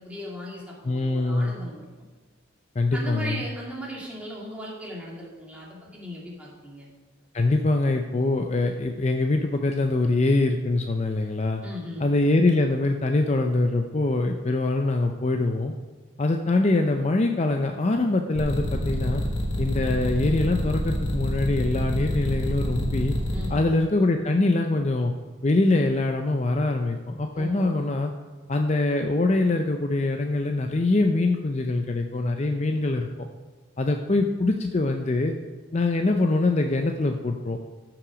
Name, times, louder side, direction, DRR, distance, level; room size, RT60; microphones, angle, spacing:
voice 1, 0.0-1.9 2.9-6.9 11.6-12.1 23.3-23.6 27.4-27.7, equal, 5° right, -4 dB, 2.2 m, -37 dB
voice 2, 0.8-1.6 2.8-3.4 7.3-11.6 12.0-15.7 16.2-19.2 19.6-23.1 23.5-25.1 25.4-28.1 28.5-33.3 33.8-35.3 35.7-37.6, left 2 dB, 35° left, 4 dB, 0.5 m, -23 dB
sound 1, 18.4-23.5, left 1 dB, 70° left, 2.1 m, -28 dB
14.0 x 6.0 x 5.0 m, 1.3 s
head